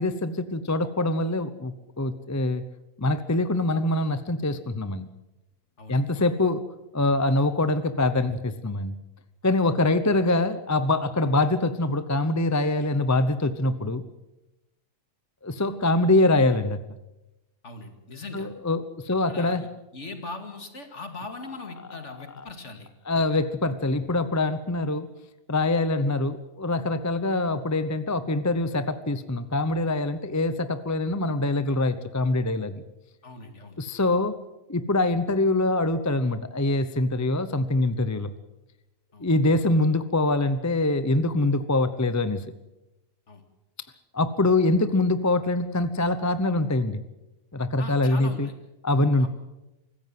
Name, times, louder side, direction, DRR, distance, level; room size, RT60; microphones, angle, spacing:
voice 1, 0.0-2.7 3.0-5.1 5.9-6.6 6.9-9.0 9.4-14.0 15.4-16.8 18.3-19.6 23.1-25.1 25.5-32.8 33.8-34.3 34.7-38.3 39.2-42.4 44.1-47.0 47.5-48.5 48.8-49.3, left 2 dB, 15° left, 12 dB, 0.7 m, -24 dB
voice 2, 5.8-6.3 17.6-18.5 19.3-19.7 19.9-22.9 33.2-33.8 39.1-39.3 43.3-43.4 47.8-48.5 49.2-49.3, left 3 dB, 55° left, 6 dB, 2.6 m, -40 dB
24.5 x 15.0 x 7.7 m, 0.97 s
omnidirectional pair, 1.5 m